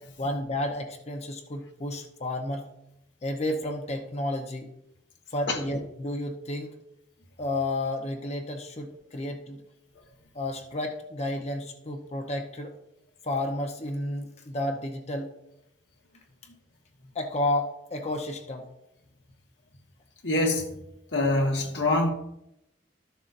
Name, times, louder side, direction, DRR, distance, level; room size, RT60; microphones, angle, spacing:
voice 1, 0.2-2.7 3.2-4.7 5.3-6.8 7.4-9.6 10.3-12.7 13.2-15.3 17.1-18.7, left 1 dB, 35° left, 0.9 m, -31 dB
voice 2, 20.2-20.8 21.1-22.1, left 2 dB, 70° left, 1.4 m, -25 dB
13.0 x 6.9 x 2.6 m
head